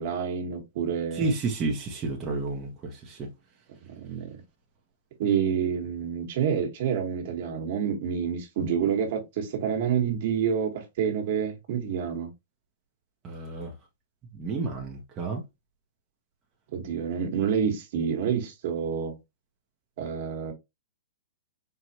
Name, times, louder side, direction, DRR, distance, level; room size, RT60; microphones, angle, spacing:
voice 1, 0.0-1.3 3.8-4.4 5.2-12.3 16.7-19.2 20.0-20.5, right 7 dB, 55° right, 1.5 m, -28 dB
voice 2, 1.1-3.3 13.2-13.7 14.3-15.4, right 3 dB, 25° right, 0.9 m, -31 dB
4.6 x 2.5 x 2.9 m
hypercardioid pair, 135°, 0 cm